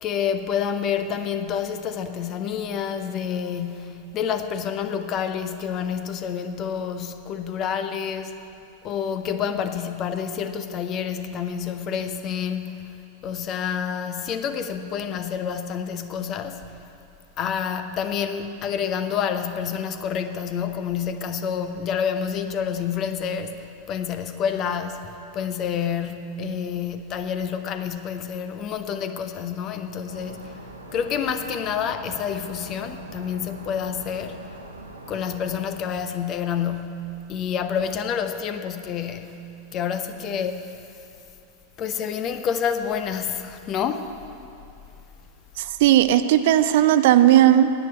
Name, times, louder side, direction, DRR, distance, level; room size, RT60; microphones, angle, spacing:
voice 1, 0.0-8.4 8.8-12.8 13.2-16.6 17.4-23.6 23.9-30.6 30.9-34.4 35.1-40.8 41.8-44.1, left 7 dB, 35° left, 0.7 m, -28 dB
sound 1, 30.1-35.7, right 2 dB, 80° right, 1.1 m, -42 dB
voice 2, 45.6-47.7, right 12 dB, 50° right, 0.5 m, -16 dB
10.0 x 9.1 x 7.9 m
figure-of-eight pair, 90°, 0 cm